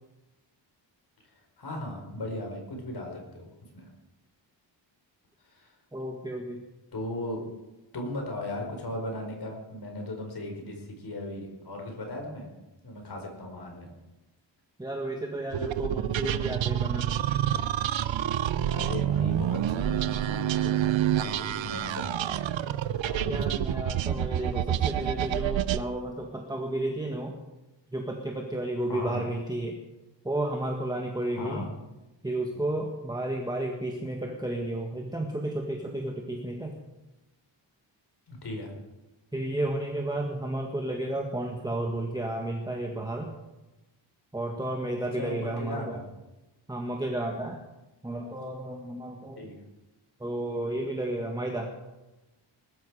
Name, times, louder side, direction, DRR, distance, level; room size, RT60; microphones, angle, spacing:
voice 1, 1.3-3.5 3.7-3.9 5.4-5.7 6.9-7.4 7.9-12.5 12.8-13.9 18.6-22.2 22.9-23.5 28.9-29.2 31.3-31.7 38.3-38.7 45.2-46.0 49.4-49.6, left 1 dB, 60° left, 2 dB, 4.9 m, -37 dB
voice 2, 5.9-6.6 14.8-17.2 23.2-27.4 27.9-29.8 30.2-31.7 32.2-36.7 39.3-43.3 44.3-46.0 46.7-47.6 48.0-49.5 50.2-51.7, right 1 dB, 10° right, 1 dB, 1.6 m, -32 dB
sound 1, 15.5-25.8, right 11 dB, 85° right, 0.7 m, -28 dB
20.0 x 13.0 x 4.9 m, 1.1 s
wide cardioid pair, 140°, 45 cm